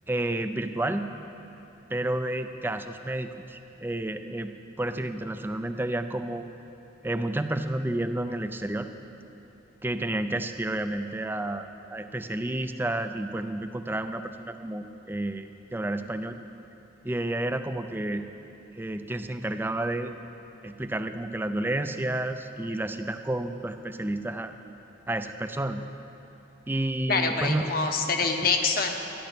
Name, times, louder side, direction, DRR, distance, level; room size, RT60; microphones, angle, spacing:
voice 1, 0.1-1.1 1.9-6.4 7.0-8.9 9.8-16.4 17.0-18.2 18.8-20.1 20.6-24.5 25.1-25.8 26.7-27.6, right 1 dB, 10° right, 9 dB, 0.4 m, -30 dB
voice 2, 27.1-28.9, left 4 dB, 50° left, 4 dB, 1.0 m, -25 dB
13.5 x 10.0 x 5.9 m, 2.9 s
head